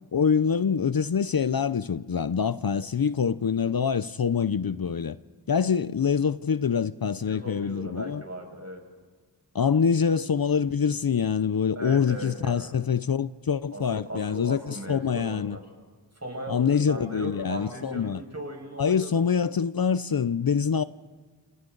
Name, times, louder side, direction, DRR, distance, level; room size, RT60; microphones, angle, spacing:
voice 1, 0.1-5.2 5.5-8.2 9.5-15.6 16.5-18.2 18.8-20.8, left 6 dB, 55° left, 0.6 m, -25 dB
voice 2, 7.3-8.8 11.8-12.8 13.7-15.6 16.1-19.3, right 1 dB, 35° right, 5.9 m, -38 dB
29.5 x 29.0 x 4.0 m
wide cardioid pair, 65°, 43 cm